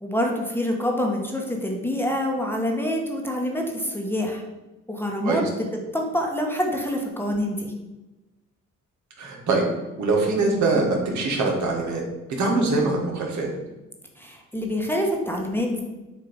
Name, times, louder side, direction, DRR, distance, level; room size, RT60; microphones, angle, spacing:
voice 1, 0.0-4.4 4.9-5.7 5.9-7.7 14.2-15.8, left 1 dB, 5° left, 1 dB, 1.1 m, -26 dB
voice 2, 9.2-9.7 10.0-12.0 12.4-13.5, right 3 dB, 70° right, 0 dB, 1.6 m, -23 dB
7.2 x 2.8 x 5.1 m, 1.1 s
cardioid pair, 90°, 30 cm